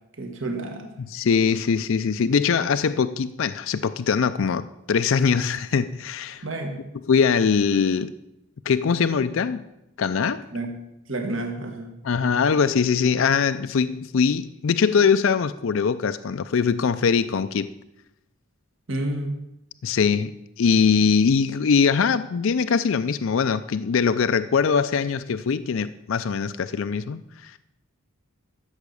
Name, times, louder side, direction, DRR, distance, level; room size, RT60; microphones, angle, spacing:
voice 1, 0.2-0.9 6.4-6.8 10.5-10.8 11.1-12.0 18.9-19.4, right 2 dB, 60° right, 4 dB, 1.6 m, -30 dB
voice 2, 1.0-6.4 7.1-8.1 8.7-9.6 10.0-10.4 12.0-17.7 19.8-20.3 20.6-27.6, left 6 dB, 60° left, 12 dB, 0.4 m, -22 dB
13.0 x 7.2 x 6.7 m, 0.87 s
head